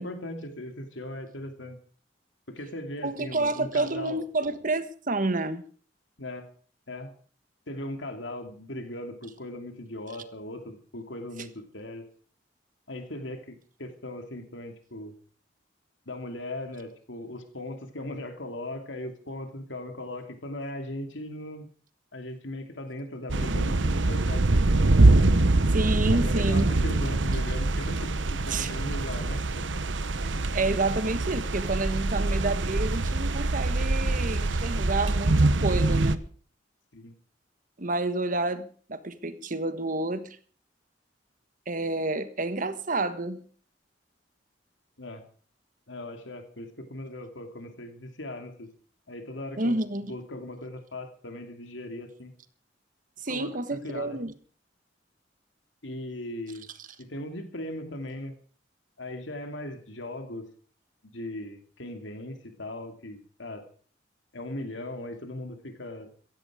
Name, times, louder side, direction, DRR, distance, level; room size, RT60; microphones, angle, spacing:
voice 1, 0.0-1.8 2.5-4.2 6.2-6.5 6.9-7.1 7.7-12.1 12.9-15.1 16.1-21.7 22.1-24.8 26.0-29.6 36.9-37.1 45.0-45.2 45.9-48.7 49.1-49.8 50.0-52.3 53.3-54.2 55.8-56.7 57.0-58.4 59.0-60.5 61.0-63.6 64.3-66.1, left 1 dB, 90° left, 6 dB, 2.7 m, -38 dB
voice 2, 3.0-5.6 25.7-26.7 28.5-28.7 30.2-36.2 37.8-40.4 41.7-43.4 49.6-50.1 53.2-54.3 56.8-56.9, right 2 dB, 45° right, 12 dB, 1.4 m, -29 dB
sound 1, 23.3-36.2, right 2 dB, 80° right, 1.0 m, -24 dB
16.5 x 15.5 x 5.0 m, 0.43 s
head